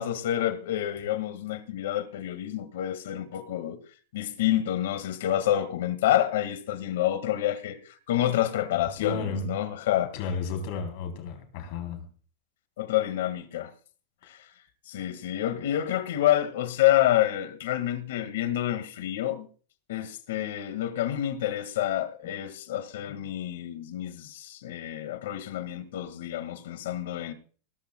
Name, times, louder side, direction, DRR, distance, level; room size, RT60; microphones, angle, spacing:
voice 1, 0.0-3.8 4.1-10.1 12.8-13.7 14.2-14.5 14.9-19.5 19.9-27.3, left 12 dB, 80° left, 1.9 m, -28 dB
voice 2, 9.0-9.5 10.1-12.1 22.2-22.3 23.1-23.2, left 4 dB, 50° left, 3.7 m, -33 dB
18.0 x 14.0 x 2.3 m
supercardioid pair, 160°, 0 cm